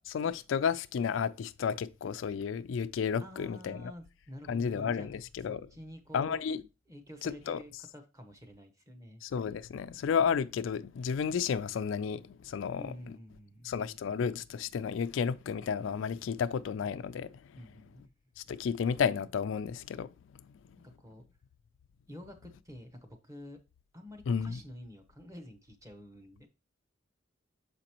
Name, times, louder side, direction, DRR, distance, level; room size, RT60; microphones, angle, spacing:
voice 1, 0.1-3.8 4.5-5.7 6.1-6.6 7.2-7.6 9.2-12.9 13.6-17.4 18.4-20.1 24.3-24.6, left 6 dB, 80° left, 0.3 m, -32 dB
voice 2, 3.2-5.1 5.4-9.2 12.8-13.7 17.5-18.1 18.4-18.5 21.0-21.2 22.1-23.6 23.9-26.5, equal, 15° right, 1.0 m, -49 dB
6.8 x 5.0 x 2.9 m
head